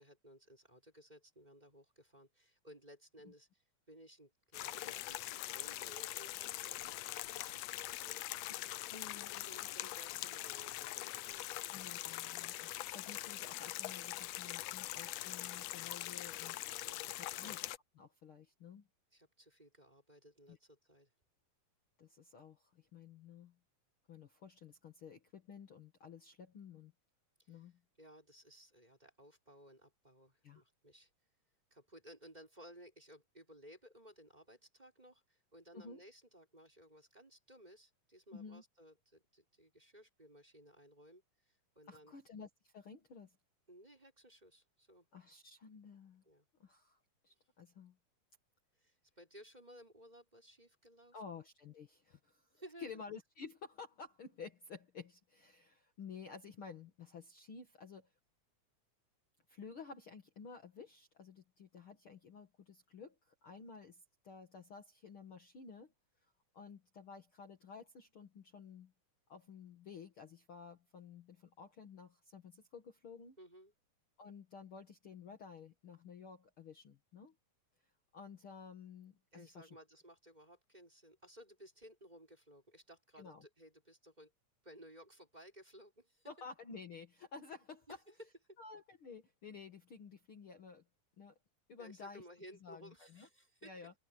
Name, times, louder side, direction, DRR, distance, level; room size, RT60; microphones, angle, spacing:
voice 1, 0.0-8.4 9.4-11.6 16.8-17.5 19.1-21.1 27.4-27.7 28.0-31.1 31.7-42.2 43.7-45.1 46.2-46.5 48.8-51.2 52.5-52.9 73.4-73.7 79.3-84.3 84.6-86.3 87.9-88.6 91.8-93.7, equal, 10° right, 5.3 m, -58 dB
sound 1, 4.5-17.8, left 16 dB, 75° left, 1.5 m, -43 dB
voice 2, 8.8-9.8 11.7-16.6 17.3-17.6 18.0-18.9 20.5-20.6 22.0-23.6 24.1-26.9 27.5-27.8 30.4-30.6 35.7-36.0 38.3-38.6 41.9-43.4 45.1-46.2 46.6-48.0 51.1-58.1 59.5-65.9 66.5-68.9 69.3-73.4 74.2-77.3 78.1-79.7 83.2-83.4 86.3-87.9 88.6-90.8 91.2-91.3 91.7-92.3 92.6-93.3 93.6-93.9, left 5 dB, 45° left, 2.4 m, -53 dB
omnidirectional pair, 3.5 m